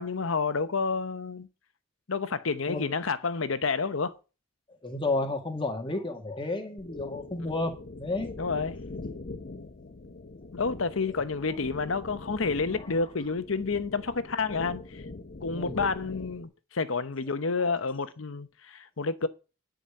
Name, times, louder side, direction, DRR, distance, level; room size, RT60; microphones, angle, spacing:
voice 1, 0.0-1.5 2.1-4.2 7.4-7.5 8.4-8.8 10.5-15.0 15.4-19.3, left 4 dB, 90° left, 0.9 m, -29 dB
voice 2, 4.8-8.3 15.5-15.8, left 2 dB, 25° left, 1.9 m, -31 dB
sound 1, 6.8-16.5, left 3 dB, 50° left, 0.8 m, -42 dB
10.5 x 5.2 x 7.1 m
head